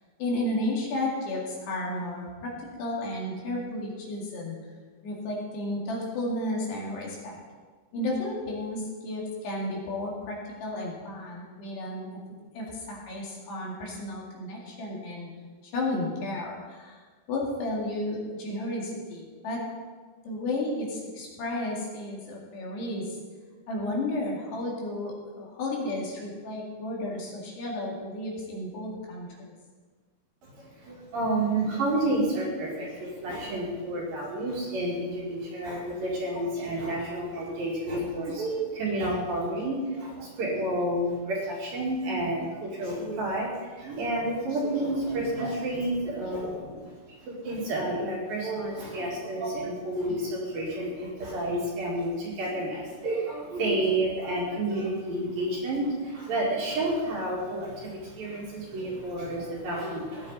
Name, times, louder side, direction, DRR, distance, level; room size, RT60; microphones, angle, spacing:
voice 1, 0.2-2.5 2.8-4.6 5.0-7.4 7.9-12.1 12.5-15.3 15.6-17.0 17.3-19.7 20.2-23.2 23.7-29.5, left 1 dB, 60° left, -3 dB, 4.1 m, -33 dB
voice 2, 30.4-60.3, right 1 dB, 55° right, -4 dB, 3.5 m, -30 dB
18.0 x 10.0 x 4.1 m, 1.4 s
omnidirectional pair, 5.7 m